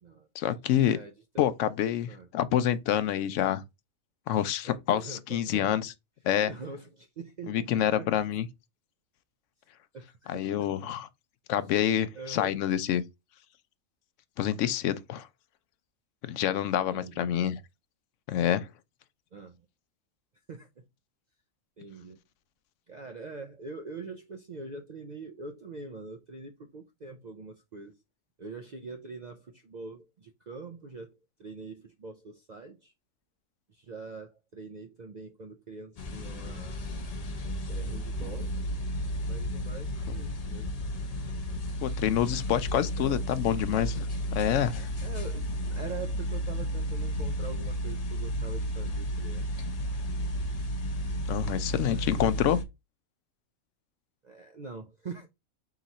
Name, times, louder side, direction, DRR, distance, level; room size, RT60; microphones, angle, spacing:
voice 1, 0.3-1.0 1.4-3.6 4.3-5.9 6.2-6.5 7.5-8.5 10.3-11.1 11.5-13.0 14.4-15.3 16.2-17.6 18.3-18.7 41.8-44.1 44.3-44.9 51.3-52.6, left 10 dB, 70° left, 0.9 m, -27 dB
voice 2, 0.9-1.5 2.1-2.3 4.6-5.9 6.4-8.1 9.9-10.4 12.1-12.6 16.9-17.3 19.3-19.6 20.5-20.8 21.8-22.2 22.9-28.0 28.4-31.1 31.4-32.9 33.7-36.8 37.7-38.6 39.3-40.8 42.7-43.6 45.0-49.5 51.1-51.2 51.9-52.4 54.2-55.3, right 4 dB, 65° right, 0.4 m, -44 dB
sound 1, 36.0-52.6, equal, 40° left, 0.6 m, -33 dB
3.9 x 3.0 x 4.0 m
omnidirectional pair, 1.4 m